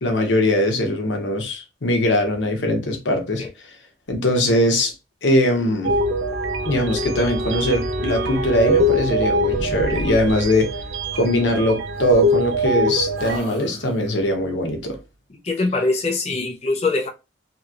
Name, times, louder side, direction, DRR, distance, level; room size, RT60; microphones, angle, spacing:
voice 1, 0.0-3.4 4.1-4.9 5.2-5.9 6.6-10.7 11.1-15.0, left 1 dB, 85° left, 0.9 m, -21 dB
Wind instrument woodwind instrument, 5.5-10.6, left 1 dB, 15° right, 1.1 m, -32 dB
sound 1, 5.8-13.4, equal, 80° right, 0.4 m, -23 dB
sound 2, 8.3-9.2 9.4-10.6 11.9-12.8 13.1-14.4, equal, 50° right, 0.9 m, -36 dB
voice 2, 15.4-17.1, left 3 dB, 35° left, 0.6 m, -22 dB
2.9 x 2.8 x 2.5 m
head